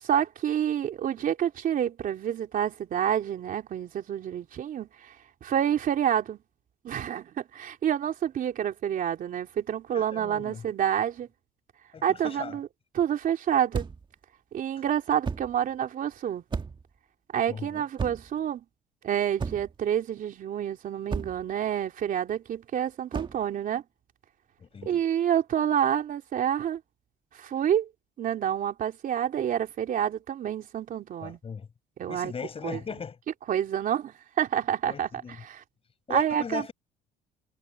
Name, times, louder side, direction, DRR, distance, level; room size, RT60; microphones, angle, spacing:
voice 1, 0.0-5.1 5.4-6.4 6.8-11.3 12.0-12.7 12.9-13.8 14.5-16.4 17.3-18.6 19.0-23.8 24.8-26.8 27.3-27.9 28.2-31.4 32.0-32.3 32.6-32.8 33.5-35.6 36.1-36.6, right 9 dB, 55° right, 3.4 m, -28 dB
voice 2, 9.9-10.6 11.9-12.6 17.5-17.8 24.6-25.0 31.2-31.7 32.1-33.2 34.8-35.4 36.1-36.7, left 6 dB, 35° left, 5.5 m, -38 dB
sound 1, 13.7-14.1 15.2-15.6 16.5-16.9 18.0-18.4 19.4-19.8 21.1-21.5 23.1-23.4, right 5 dB, 30° right, 1.6 m, -33 dB
cardioid pair, 110°, 17 cm